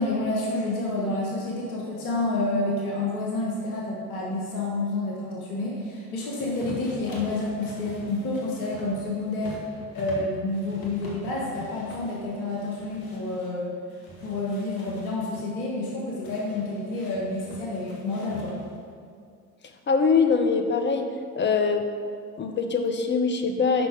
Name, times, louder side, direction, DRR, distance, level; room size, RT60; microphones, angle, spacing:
voice 1, 0.0-9.6 9.9-13.7 14.2-18.6, left 2 dB, 80° left, -4 dB, 1.5 m, -29 dB
sound 1, 6.4-13.5 13.9-15.5 16.2-18.8, left 2 dB, 55° left, 1.7 m, -44 dB
voice 2, 19.9-21.1 21.4-21.8 22.4-23.9, left 5 dB, 25° left, 5 dB, 0.8 m, -23 dB
6.9 x 5.6 x 4.9 m, 2.2 s
figure-of-eight pair, 65°, 43 cm